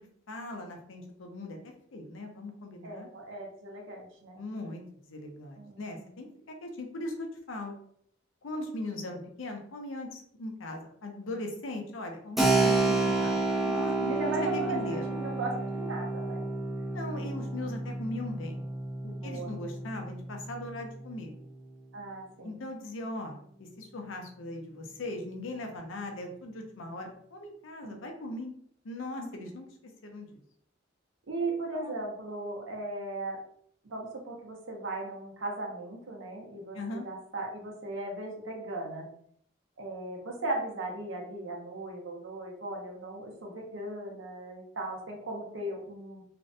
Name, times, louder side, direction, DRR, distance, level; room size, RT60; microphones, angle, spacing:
voice 1, 0.3-1.6 1.9-3.1 4.4-7.7 8.4-15.1 16.9-18.7 19.0-21.3 22.4-28.5 28.8-29.7 30.0-30.4 31.7-31.9 36.7-37.1, left 2 dB, 85° left, 3 dB, 0.5 m, -39 dB
voice 2, 2.8-4.4 5.6-6.1 14.1-16.4 19.2-19.6 21.9-22.6 27.8-28.0 29.2-29.5 31.3-33.4 33.8-39.1 39.8-46.2, right 2 dB, 85° right, 0 dB, 0.7 m, -37 dB
Keyboard (musical), 12.4-20.7, right 2 dB, ahead, 0.3 m, -30 dB
2.5 x 2.1 x 2.5 m, 0.65 s
head